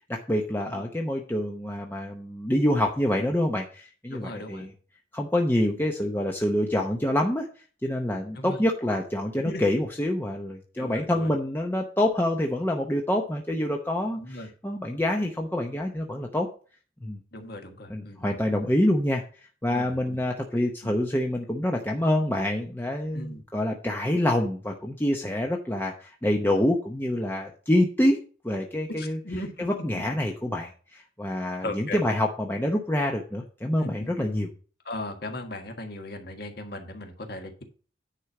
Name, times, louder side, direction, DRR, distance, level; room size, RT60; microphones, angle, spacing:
voice 1, 0.1-4.7 5.1-7.5 7.8-16.5 17.0-17.2 17.9-19.2 19.6-28.2 28.4-29.2 29.6-34.5, left 1 dB, 10° left, 1 dB, 0.7 m, -26 dB
voice 2, 4.1-4.7 8.4-8.6 9.4-9.6 10.8-11.3 14.1-14.5 17.3-18.3 19.7-20.2 20.8-20.9 23.1-23.4 29.0-29.8 31.6-32.0 33.8-34.3 34.9-37.6, left 1 dB, 55° left, 4 dB, 1.6 m, -37 dB
9.9 x 4.5 x 6.0 m, 0.40 s
head